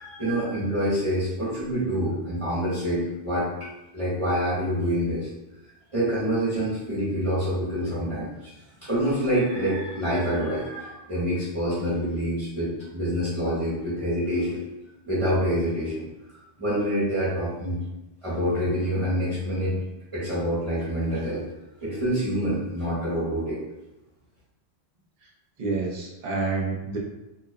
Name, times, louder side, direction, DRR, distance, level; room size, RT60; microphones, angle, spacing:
voice 1, 0.0-3.5 3.9-5.3 5.9-8.5 8.8-14.6 15.0-16.1 16.6-17.8 18.2-19.8 20.1-21.4 21.8-23.6, equal, 30° right, -11 dB, 1.0 m, -26 dB
voice 2, 25.6-27.0, right 3 dB, 50° right, -3 dB, 0.6 m, -28 dB
3.1 x 2.0 x 2.4 m, 0.96 s
omnidirectional pair, 1.1 m